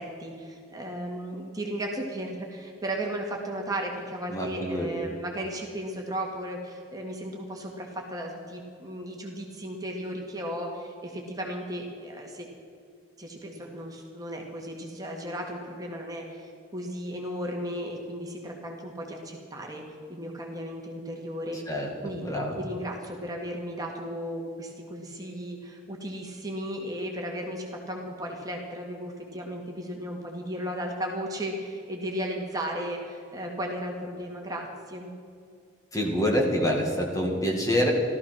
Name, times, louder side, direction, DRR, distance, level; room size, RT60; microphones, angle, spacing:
voice 1, 0.0-12.5 13.2-19.8 20.1-22.3 22.6-35.1, equal, 20° right, 0 dB, 1.9 m, -35 dB
voice 2, 4.3-4.9 21.7-21.9 22.2-22.6 35.9-37.9, equal, 15° left, 0 dB, 1.9 m, -26 dB
15.5 x 13.5 x 6.1 m, 2.2 s
head